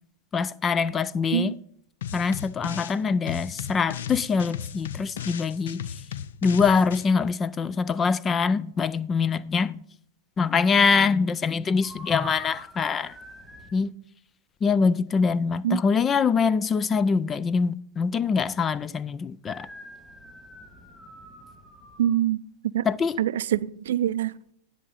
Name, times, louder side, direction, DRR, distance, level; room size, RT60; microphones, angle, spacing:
voice 1, 0.3-1.5 2.1-5.8 6.4-9.8 10.4-13.1 13.7-13.9 14.6-19.7 22.9-23.2, left 5 dB, 25° left, 0.3 m, -24 dB
sound 1, 2.0-3.0 3.3-7.0, left 9 dB, 75° left, 0.5 m, -36 dB
sound 2, 11.8-13.8 19.4-22.2, right 1 dB, 5° left, 2.4 m, -45 dB
voice 2, 22.0-22.4 22.7-22.9 23.2-24.5, right 11 dB, 75° right, 0.4 m, -25 dB
10.0 x 7.6 x 4.1 m
hypercardioid pair, 110°, 0 cm